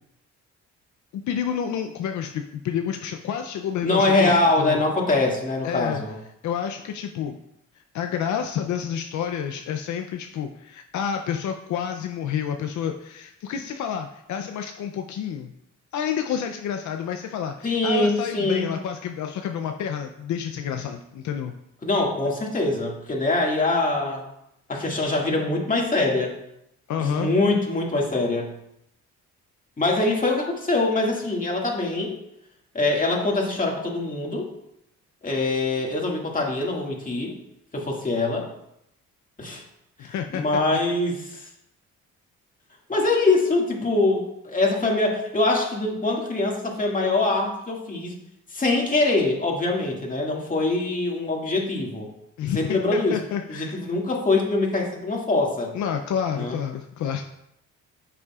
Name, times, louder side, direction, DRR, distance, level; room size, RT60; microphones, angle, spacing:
voice 1, 1.1-4.8 5.6-6.0 6.4-7.4 7.7-15.5 15.9-21.5 26.9-27.3 40.0-40.8 52.4-53.8 55.7-57.2, left 8 dB, 70° left, 5 dB, 0.6 m, -29 dB
voice 2, 3.8-6.1 17.6-18.7 21.8-24.2 24.7-26.3 27.0-28.5 29.8-32.2 32.7-34.5 35.2-37.3 37.7-38.5 39.4-39.6 40.0-41.4 42.9-48.2 48.5-52.1 52.5-53.2 53.5-55.7 56.3-56.6, left 2 dB, 25° left, -1 dB, 2.1 m, -23 dB
9.9 x 6.9 x 2.4 m, 0.80 s
cardioid pair, 90°, 30 cm